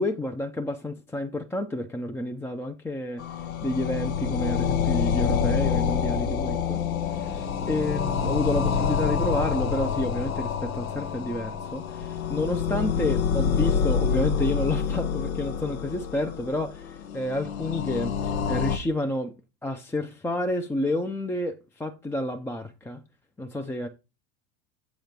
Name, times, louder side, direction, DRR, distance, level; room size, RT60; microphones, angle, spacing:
voice 1, 0.0-3.2 3.6-6.8 7.1-19.3 19.6-23.0 23.4-23.9, left 1 dB, 5° left, 0.4 m, -30 dB
sound 1, 3.2-18.8, left 7 dB, 90° left, 0.8 m, -27 dB
7.1 x 3.0 x 5.2 m
hypercardioid pair, 85°, 40 cm